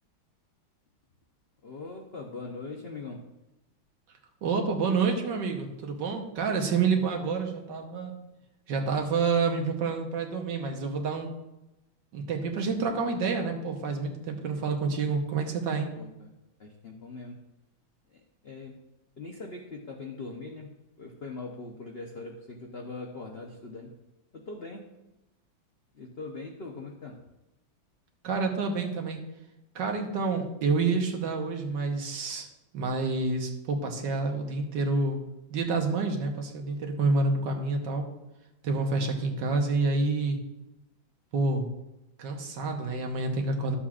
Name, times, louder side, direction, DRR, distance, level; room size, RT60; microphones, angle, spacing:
voice 1, 1.6-3.3 16.0-16.3 16.6-17.5 18.1-18.8 19.2-23.9 24.3-24.9 25.9-27.3, left 3 dB, 90° left, 1 dB, 0.5 m, -41 dB
voice 2, 4.4-8.2 8.7-11.3 12.1-15.9 28.2-29.2 29.7-32.5 32.7-35.2 35.5-38.1 38.6-40.4 41.3-41.7 42.2-43.8, right 4 dB, 65° right, 3 dB, 1.6 m, -28 dB
12.0 x 7.3 x 2.4 m, 0.94 s
omnidirectional pair, 2.2 m